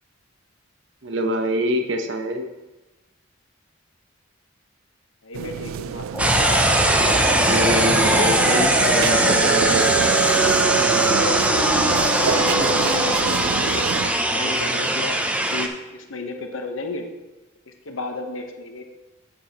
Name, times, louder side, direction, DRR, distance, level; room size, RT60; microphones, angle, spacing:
voice 1, 1.0-2.5 7.4-9.9, equal, 65° right, 5 dB, 0.9 m, -25 dB
voice 2, 5.2-6.0 6.3-6.5 12.4-17.1 17.7-18.8, left 2 dB, 85° left, 5 dB, 1.0 m, -34 dB
sound 1, 5.3-14.1, right 7 dB, 85° right, 0.3 m, -28 dB
sound 2, 6.1-13.2, right 2 dB, 10° left, 1.8 m, -25 dB
sound 3, 6.2-15.7, right 1 dB, 5° right, 0.4 m, -20 dB
9.3 x 8.6 x 2.9 m, 1.1 s
head